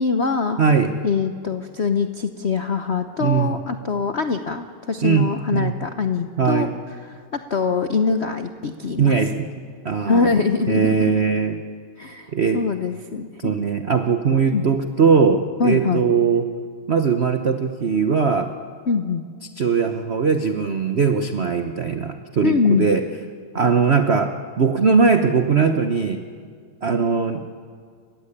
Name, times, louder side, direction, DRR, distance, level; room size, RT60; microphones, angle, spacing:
voice 1, 0.0-0.6 1.0-6.7 7.1-9.2 10.0-11.1 12.0-13.5 14.5-14.6 15.6-16.1 18.9-19.2 22.4-22.9, left 5 dB, 60° left, 8 dB, 0.7 m, -23 dB
voice 2, 0.6-0.9 3.2-3.6 5.0-5.7 6.4-6.7 9.0-9.3 9.8-10.3 10.7-11.6 12.3-12.6 13.4-16.5 16.9-18.5 19.6-23.0 23.5-26.2 26.8-27.4, right 5 dB, 50° right, 7 dB, 0.8 m, -20 dB
29.5 x 15.5 x 9.9 m, 2.1 s
omnidirectional pair, 2.3 m